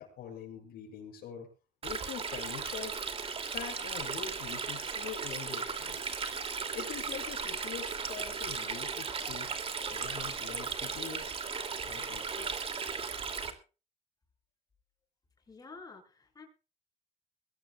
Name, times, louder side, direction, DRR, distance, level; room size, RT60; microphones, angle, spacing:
voice 1, 0.0-1.5 1.8-3.0 3.5-6.2 6.7-9.5 9.9-11.4 11.8-12.6, left 8 dB, 75° left, 1 dB, 7.4 m, -44 dB
Stream, 1.8-13.5, right 5 dB, 35° right, 2.7 m, -36 dB
voice 2, 15.5-16.4, left 4 dB, 20° left, 0 dB, 7.5 m, -50 dB
22.0 x 17.0 x 2.4 m, 0.34 s
cardioid pair, 125°, 16 cm